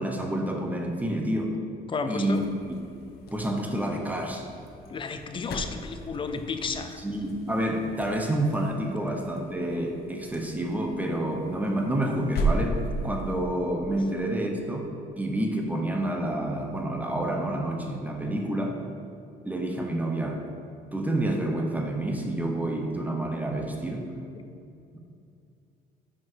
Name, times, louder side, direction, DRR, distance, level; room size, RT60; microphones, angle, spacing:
voice 1, 0.0-1.5 2.1-2.7 3.3-4.5 7.0-14.9 15.2-18.8 19.4-20.4 20.9-24.1 24.9-25.0, right 1 dB, 10° right, 2 dB, 0.8 m, -28 dB
voice 2, 1.9-2.4 4.9-7.0 24.3-24.4, left 4 dB, 30° left, 7 dB, 0.5 m, -32 dB
sound 1, 2.2-13.4, right 1 dB, 65° left, 0.8 m, -36 dB
5.9 x 5.1 x 4.6 m, 2.5 s
cardioid pair, 110°, 17 cm